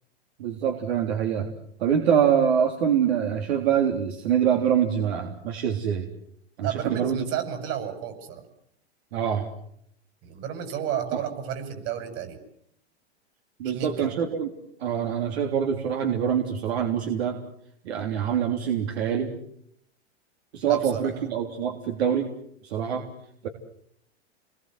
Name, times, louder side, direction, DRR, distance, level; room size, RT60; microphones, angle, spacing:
voice 1, 0.4-1.5 1.8-6.1 6.6-7.2 9.1-9.5 11.1-11.2 13.6-14.5 14.8-17.4 17.8-19.3 20.5-22.3 22.6-23.1 23.4-23.5, right 8 dB, 70° right, 3 dB, 3.5 m, -25 dB
voice 2, 6.6-8.4 10.2-12.4 13.7-14.1 20.6-21.3, right 9 dB, 45° right, 8 dB, 6.9 m, -32 dB
28.5 x 21.0 x 7.9 m, 0.71 s
hypercardioid pair, 115°, 33 cm